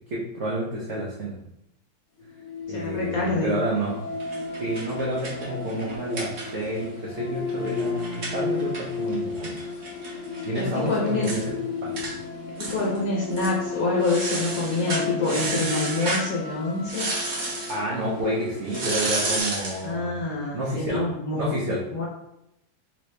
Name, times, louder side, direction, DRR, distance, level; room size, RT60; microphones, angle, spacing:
voice 1, 0.1-1.4 2.7-4.0 4.6-9.6 10.5-11.9 17.7-20.2 20.5-21.0 21.3-21.8, right 1 dB, 80° right, -5 dB, 0.6 m, -29 dB
sound 1, 2.2-19.4, left 4 dB, 75° left, 0.6 m, -33 dB
voice 2, 2.7-3.6 10.5-11.3 12.6-17.1 19.8-21.5 21.9-22.0, left 3 dB, 60° left, -4 dB, 1.0 m, -26 dB
sound 2, 4.2-6.8 7.1-7.2 7.5-10.6 10.9-11.0 11.2-11.5 12.0-12.1 12.6-13.0 13.3-13.6 14.0-16.3 16.9-17.8 18.7-19.8, right 2 dB, 50° right, 1.0 m, -31 dB
3.2 x 2.9 x 3.2 m, 0.81 s
omnidirectional pair, 2.2 m